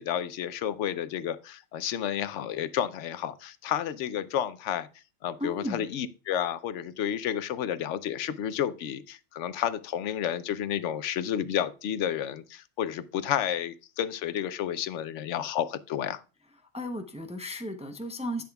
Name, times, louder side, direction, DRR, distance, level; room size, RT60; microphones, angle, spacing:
voice 1, 0.0-4.9 5.2-16.2, left 10 dB, 90° left, 0.9 m, -31 dB
voice 2, 5.4-5.8 16.7-18.4, equal, 10° right, 0.5 m, -34 dB
10.5 x 7.7 x 2.3 m
omnidirectional pair, 1.2 m